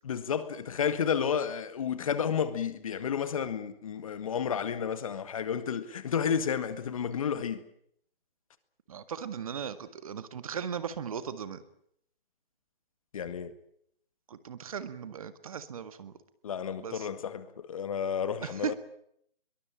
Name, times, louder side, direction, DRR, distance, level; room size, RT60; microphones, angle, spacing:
voice 1, 0.0-7.6 13.1-13.5 16.4-18.7, left 7 dB, 35° left, 1.9 m, -31 dB
voice 2, 8.9-11.6 14.3-16.1 16.8-17.1 18.4-18.7, right 7 dB, 35° right, 1.8 m, -37 dB
23.0 x 21.5 x 8.8 m
figure-of-eight pair, 160°, 30 cm